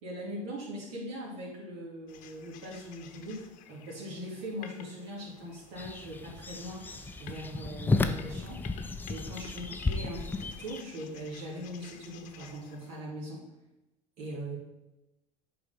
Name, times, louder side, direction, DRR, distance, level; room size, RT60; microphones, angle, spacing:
voice 1, 0.0-6.8 7.2-13.4 14.2-14.6, equal, 70° right, -5 dB, 2.3 m, -41 dB
sound 1, 2.1-13.0, left 9 dB, 60° left, 0.9 m, -52 dB
sound 2, 5.2-10.6, right 1 dB, 30° right, 2.7 m, -57 dB
sound 3, 5.8-10.8, left 3 dB, 15° left, 0.5 m, -33 dB
6.8 x 4.8 x 5.6 m, 0.97 s
supercardioid pair, 115°, 15 cm